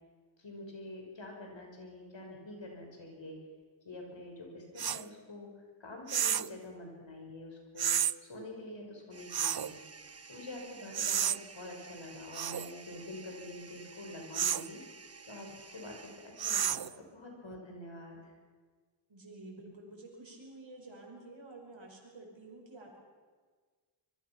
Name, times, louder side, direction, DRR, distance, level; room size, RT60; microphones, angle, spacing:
voice 1, 0.4-3.4 3.8-5.5 5.8-9.8 10.3-14.8 15.3-16.8 17.1-18.3, left 1 dB, 75° left, 1 dB, 5.8 m, -46 dB
sound 1, 4.8-5.0 6.1-6.5 7.8-8.1 9.3-9.7 10.9-11.4 12.3-12.7 14.3-14.7 16.4-16.9, right 9 dB, 55° right, 0.6 m, -31 dB
sound 2, 9.1-16.8, right 4 dB, 35° right, 0.9 m, -53 dB
voice 2, 19.1-23.0, right 2 dB, 75° right, 0 dB, 5.3 m, -50 dB
26.0 x 21.5 x 6.1 m, 1.5 s
wide cardioid pair, 65°, 45 cm